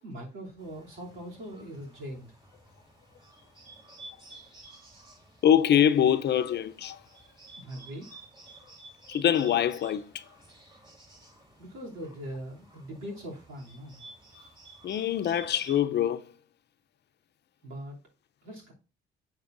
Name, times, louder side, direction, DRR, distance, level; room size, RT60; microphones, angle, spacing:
voice 1, 0.0-2.3 7.5-8.2 11.6-14.0 17.6-18.0 18.4-18.7, equal, 85° right, 2.9 m, -41 dB
Bird, 0.6-15.8, right 2 dB, 25° right, 3.5 m, -53 dB
voice 2, 5.4-7.0 9.1-10.2 14.8-16.2, left 9 dB, 60° left, 0.6 m, -24 dB
7.9 x 6.9 x 2.6 m
cardioid pair, 90°, 20 cm